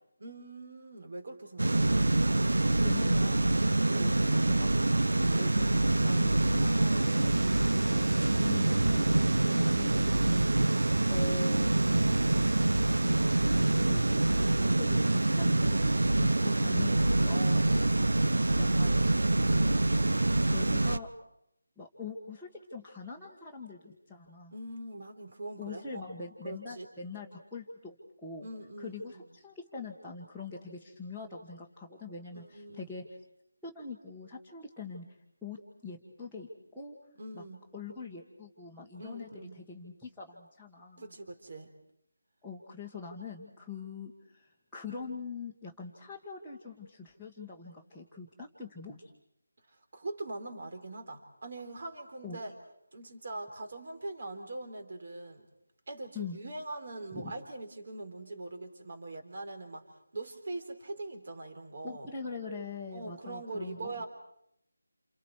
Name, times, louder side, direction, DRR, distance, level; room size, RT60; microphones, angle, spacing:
voice 1, 0.2-1.9 24.5-26.0 26.4-26.9 28.4-29.2 32.5-32.9 37.2-37.6 39.0-39.6 41.0-41.7 49.7-52.5 52.9-55.4 55.9-59.9 60.1-62.1 62.9-64.1, right 2 dB, 45° right, 6 dB, 4.0 m, -42 dB
sound 1, 1.6-21.0, right 2 dB, 80° right, 0.9 m, -26 dB
voice 2, 2.8-5.1 5.4-7.3 7.9-9.1 9.4-10.0 11.1-11.7 13.8-14.0 14.3-15.9 16.2-17.7 18.5-19.0 19.5-19.8 20.4-21.1 21.8-24.5 25.6-27.9 28.2-28.5 28.8-33.0 33.6-35.0 35.4-35.6 35.8-37.0 37.3-37.4 37.7-41.1 42.4-49.1 52.2-52.4 56.1-56.4 57.1-57.3 61.8-64.0, left 4 dB, ahead, -12 dB, 1.6 m, -43 dB
29.5 x 28.5 x 4.9 m, 0.76 s
figure-of-eight pair, 175°, 0 cm